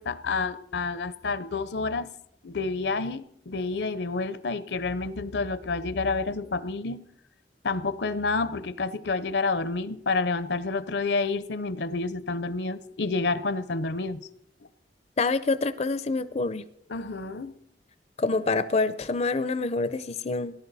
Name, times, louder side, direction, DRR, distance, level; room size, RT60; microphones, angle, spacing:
voice 1, 0.0-2.1 2.4-7.0 7.6-14.2 16.9-17.5, left 3 dB, 75° left, 16 dB, 0.7 m, -29 dB
voice 2, 15.2-16.6 18.2-20.5, left 3 dB, 40° left, 13 dB, 0.5 m, -26 dB
18.0 x 11.0 x 4.1 m, 0.74 s
head